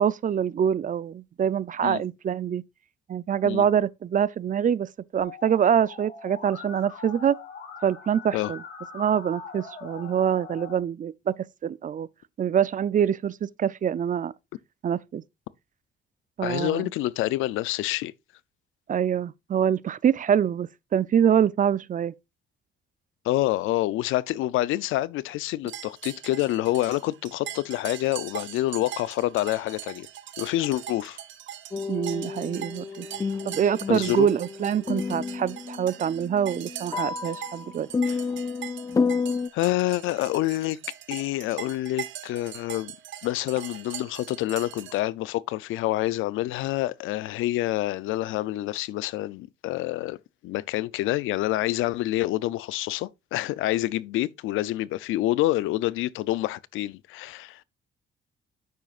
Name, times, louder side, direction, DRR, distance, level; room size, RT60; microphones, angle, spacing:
voice 1, 0.0-2.6 3.1-7.4 7.8-8.6 8.9-12.1 12.4-14.3 14.8-15.2 16.4-16.9 18.9-22.1 31.9-33.1 33.4-37.9, right 8 dB, 40° right, 0.5 m, -25 dB
Musical instrument, 5.2-10.8, left 5 dB, 55° left, 3.5 m, -42 dB
voice 2, 16.4-18.1 23.2-30.1 30.4-31.2 33.9-34.3 38.1-38.2 39.5-40.8 41.1-42.9 43.2-50.2 50.4-57.6, left 16 dB, 90° left, 0.5 m, -27 dB
sound 1, 25.7-45.0, right 11 dB, 70° right, 0.9 m, -41 dB
sound 2, 31.7-39.5, left 5 dB, 15° left, 0.3 m, -30 dB
9.4 x 7.5 x 2.4 m
cardioid pair, 90°, 20 cm